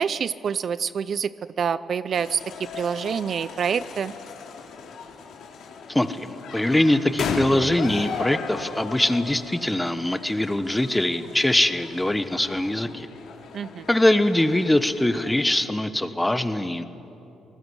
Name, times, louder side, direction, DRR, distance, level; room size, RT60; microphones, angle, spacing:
voice 1, 0.0-1.3 1.6-4.1 13.5-13.9, right 7 dB, 55° right, 16 dB, 0.5 m, -26 dB
sound 1, 2.1-15.6, left 5 dB, 75° left, 3.1 m, -37 dB
voice 2, 5.9-13.1 13.9-16.8, left 1 dB, 10° left, 11 dB, 1.3 m, -22 dB
26.0 x 19.0 x 8.1 m, 2.9 s
cardioid pair, 90°, 0 cm